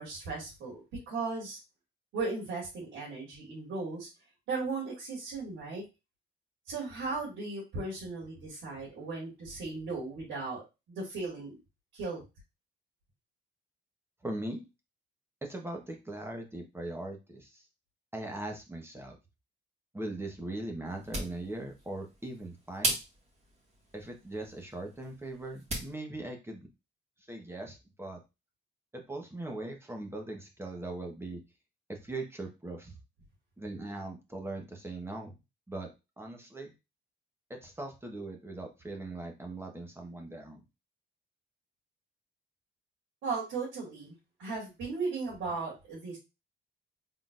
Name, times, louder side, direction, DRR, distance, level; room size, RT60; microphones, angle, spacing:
voice 1, 0.0-1.6 2.1-4.1 4.5-5.8 6.7-10.6 10.9-11.5 11.9-12.2 43.2-46.2, right 3 dB, 85° right, -5 dB, 2.4 m, -36 dB
voice 2, 14.2-14.6 15.4-17.6 18.1-19.2 19.9-23.0 23.9-26.7 27.3-28.2 28.9-31.4 31.9-33.0 33.6-35.3 35.7-35.9 36.2-36.7 37.5-40.6, right 2 dB, 10° right, 2 dB, 1.1 m, -40 dB
sound 1, 20.8-26.0, right 1 dB, 35° right, 1.9 m, -39 dB
3.9 x 3.8 x 2.5 m, 0.25 s
cardioid pair, 90°, 20 cm